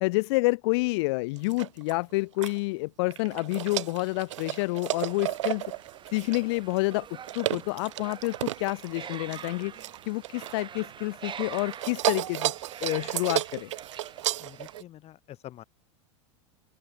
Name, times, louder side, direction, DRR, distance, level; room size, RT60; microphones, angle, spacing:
voice 1, 0.0-5.6 6.1-7.1 7.3-9.7 10.1-12.5 12.8-13.7, left 25 dB, 55° left, 0.7 m, -28 dB
sound 1, 1.4-2.6 3.1-11.0 11.3-14.8, right 15 dB, 70° right, 2.5 m, -33 dB
sound 2, 5.1-14.8, right 8 dB, 30° right, 5.7 m, -45 dB
voice 2, 14.4-15.6, left 13 dB, 40° left, 4.9 m, -46 dB
open air
hypercardioid pair, 90°, 16 cm